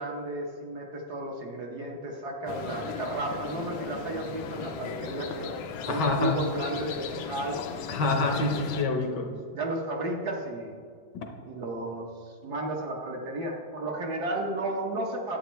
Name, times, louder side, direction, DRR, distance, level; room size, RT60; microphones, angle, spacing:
voice 1, 0.0-5.5 5.8-7.6 9.2-10.8 11.4-12.1 12.4-15.4, right 1 dB, 55° right, 0 dB, 1.4 m, -33 dB
sound 1, 2.5-8.9, left 6 dB, 85° left, 1.5 m, -37 dB
voice 2, 5.9-6.4 7.9-9.3 11.1-11.3, left 3 dB, 65° left, 4 dB, 1.2 m, -27 dB
11.5 x 8.3 x 3.1 m, 2.1 s
omnidirectional pair, 2.3 m